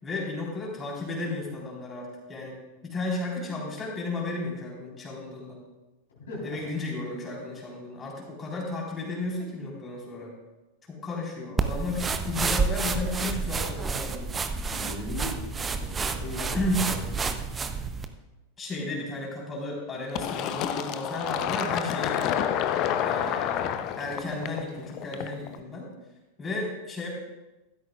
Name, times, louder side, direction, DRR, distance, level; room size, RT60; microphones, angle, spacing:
voice 1, 0.0-2.6 2.8-5.6 6.4-10.3 10.9-14.4 16.5-16.9 18.6-22.4 23.0-23.6 24.0-25.9 26.4-27.1, left 2 dB, 20° left, -3 dB, 4.0 m, -33 dB
voice 2, 6.1-6.6 14.7-15.5 15.8-17.2, left 2 dB, 65° left, -4 dB, 3.9 m, -39 dB
sound 1, 11.6-18.1, right 4 dB, 15° right, 0.7 m, -29 dB
Fill (with liquid), 20.2-25.6, left 9 dB, 40° left, 0.7 m, -29 dB
15.5 x 12.5 x 2.4 m, 1.1 s
figure-of-eight pair, 90°, 0 cm